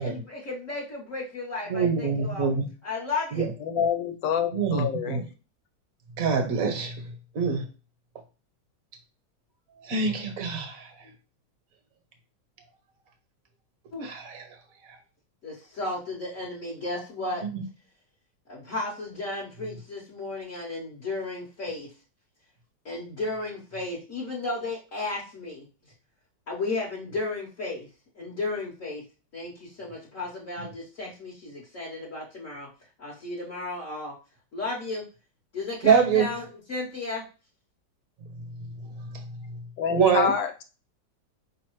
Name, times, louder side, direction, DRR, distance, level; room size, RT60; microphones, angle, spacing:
voice 1, 0.0-2.5 2.8-3.5 13.9-14.1 15.4-17.4 18.5-21.9 22.8-25.6 26.5-27.9 28.2-29.0 29.3-32.7 33.0-34.1 34.5-35.0 35.5-37.2, left 2 dB, 50° left, -5 dB, 1.3 m, -34 dB
voice 2, 1.7-2.7 3.3-3.5 3.8-3.9 4.5-5.2 6.2-6.9 7.3-7.6 9.9-10.8 14.0-14.4 17.4-17.6 35.8-36.3 39.9-40.3, right 6 dB, 55° right, 5 dB, 1.3 m, -24 dB
voice 3, 3.6-5.2 39.8-40.6, left 8 dB, 80° left, 7 dB, 1.4 m, -27 dB
5.2 x 3.2 x 3.0 m, 0.33 s
omnidirectional pair, 2.0 m